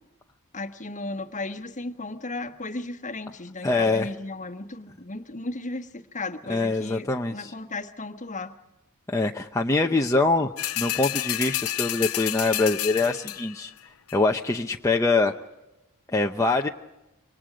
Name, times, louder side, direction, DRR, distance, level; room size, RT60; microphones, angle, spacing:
voice 1, 0.5-8.6, left 2 dB, 35° left, 7 dB, 1.4 m, -35 dB
voice 2, 3.6-4.1 6.5-7.5 9.1-13.7 14.1-15.3 16.1-16.7, left 3 dB, 15° left, 2 dB, 0.8 m, -24 dB
sound 1, 10.6-13.6 14.1-14.2, left 15 dB, 75° left, 0.7 m, -30 dB
27.0 x 25.0 x 5.1 m, 0.96 s
head